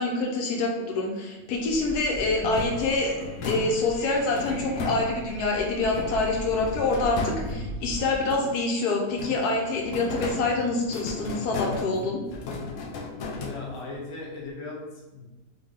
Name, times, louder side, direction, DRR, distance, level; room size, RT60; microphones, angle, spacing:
voice 1, 0.0-3.1 3.5-12.2, left 3 dB, 85° left, 1 dB, 1.2 m, -26 dB
Wind, 1.5-8.2, equal, 15° right, 1.1 m, -40 dB
sound 1, 2.4-5.5 5.9-8.7 9.1-14.0, left 3 dB, 65° left, 0.9 m, -35 dB
voice 2, 13.4-15.5, left 2 dB, 40° left, -3 dB, 0.4 m, -38 dB
3.4 x 2.6 x 3.6 m, 1.1 s
omnidirectional pair, 1.6 m